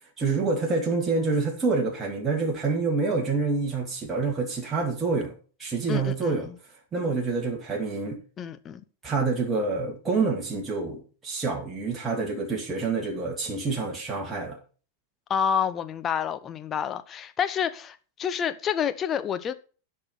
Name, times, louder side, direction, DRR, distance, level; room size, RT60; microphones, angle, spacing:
voice 1, 0.2-5.3 5.6-6.5 6.9-8.2 9.0-14.6, right 4 dB, 20° right, 2.2 m, -27 dB
voice 2, 5.9-6.5 8.4-8.8 15.3-19.5, left 8 dB, 25° left, 0.9 m, -28 dB
12.0 x 5.5 x 5.7 m
figure-of-eight pair, 90°, 0 cm